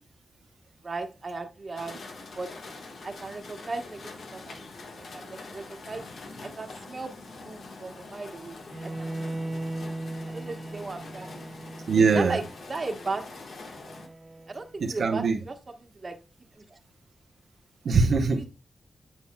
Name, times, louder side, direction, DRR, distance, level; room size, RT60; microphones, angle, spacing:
voice 1, 0.8-2.5 3.0-4.0 4.3-4.6 4.9-6.0 6.4-7.2 7.4-9.1 9.6-9.7 10.3-11.3 11.9-12.4 12.7-13.5 14.5-16.1 16.6-16.8 18.3-18.4, right 3 dB, 40° right, 1.2 m, -36 dB
sound 1, 1.8-14.1, left 3 dB, 80° left, 1.4 m, -44 dB
Bowed string instrument, 8.7-14.7, right 2 dB, 25° right, 1.1 m, -38 dB
voice 2, 11.9-12.4 14.8-15.4 17.8-18.4, right 4 dB, 80° right, 0.9 m, -22 dB
8.1 x 7.5 x 2.2 m
cardioid pair, 75°, 0 cm